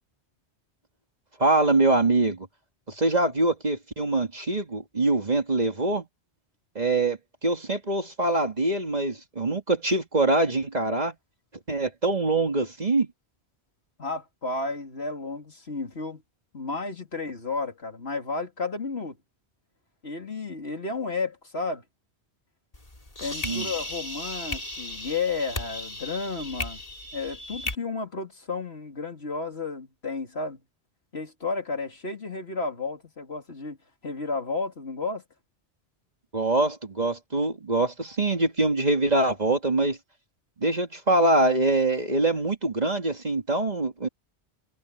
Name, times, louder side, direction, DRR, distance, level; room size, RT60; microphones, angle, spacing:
voice 1, 1.4-2.5 2.9-6.1 6.8-11.1 11.7-13.1 23.4-23.7 36.3-40.0 40.6-44.1, right 2 dB, 40° right, 2.1 m, -24 dB
voice 2, 14.0-16.2 16.5-19.2 20.0-21.8 23.2-26.8 27.1-30.6 31.1-33.8 34.0-35.2, left 3 dB, 65° left, 3.3 m, -32 dB
sound 1, 22.7-27.7, left 2 dB, 35° left, 2.7 m, -35 dB
omnidirectional pair, 1.1 m